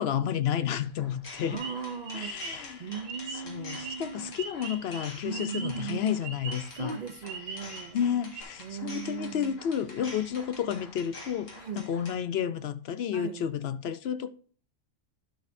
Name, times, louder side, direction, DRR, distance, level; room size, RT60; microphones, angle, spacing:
voice 1, 0.0-1.6 2.1-2.9 3.5-6.9 7.9-11.5 11.8-14.3, left 9 dB, 65° left, 0.8 m, -31 dB
sound 1, 0.8-12.1, left 2 dB, 85° left, 2.1 m, -47 dB
voice 2, 1.5-2.5 2.8-4.4 5.2-6.1 6.7-8.0 8.6-9.6 11.6-11.9 13.1-13.5, right 6 dB, 55° right, 0.5 m, -38 dB
sound 2, 1.5-8.1 8.3-8.4, right 4 dB, 80° right, 1.7 m, -42 dB
11.5 x 6.3 x 2.6 m
omnidirectional pair, 1.3 m